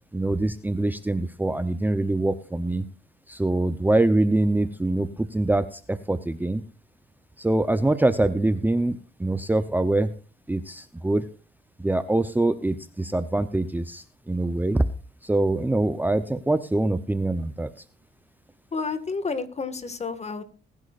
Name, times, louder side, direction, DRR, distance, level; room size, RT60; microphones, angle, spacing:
voice 1, 0.1-2.8 3.3-6.6 7.4-10.1 10.5-11.3 11.8-14.9 15.2-17.7, right 2 dB, 10° right, 11 dB, 0.8 m, -24 dB
voice 2, 18.7-20.4, left 4 dB, 35° left, 11 dB, 1.9 m, -30 dB
21.0 x 10.5 x 2.5 m, 0.36 s
cardioid pair, 90°, 20 cm